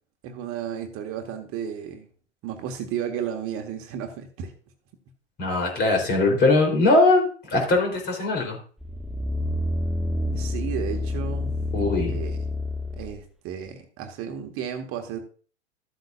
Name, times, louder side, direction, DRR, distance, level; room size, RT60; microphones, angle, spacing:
voice 1, 0.2-2.1 2.4-4.5 10.3-11.6 12.1-12.4 13.0-15.2, right 8 dB, 40° right, 4 dB, 1.4 m, -33 dB
voice 2, 5.4-8.6 11.7-12.2, left 2 dB, 30° left, 2 dB, 3.6 m, -21 dB
sound 1, 8.8-13.2 13.7-13.8, left 2 dB, ahead, 0.4 m, -28 dB
13.5 x 7.9 x 2.5 m, 0.40 s
figure-of-eight pair, 90°, 34 cm